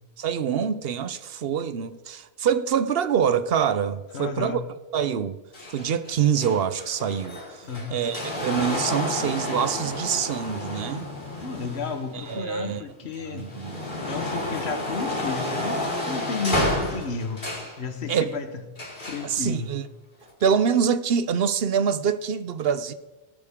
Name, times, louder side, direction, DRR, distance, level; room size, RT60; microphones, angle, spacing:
voice 1, 0.2-4.6 4.9-5.4 5.7-7.6 7.9-11.1 12.1-12.8 13.3-13.8 18.1-18.3 19.2-19.8 20.4-22.9, right 7 dB, 70° right, 0.9 m, -25 dB
voice 2, 4.1-4.6 7.6-8.0 11.4-13.6 14.0-17.4 17.8-19.7, left 4 dB, 90° left, 1.4 m, -33 dB
sound 1, 5.5-12.7 13.2-17.8 18.8-19.3 20.2-20.3, left 1 dB, 50° left, 3.1 m, -30 dB
17.5 x 11.5 x 3.7 m
omnidirectional pair, 1.1 m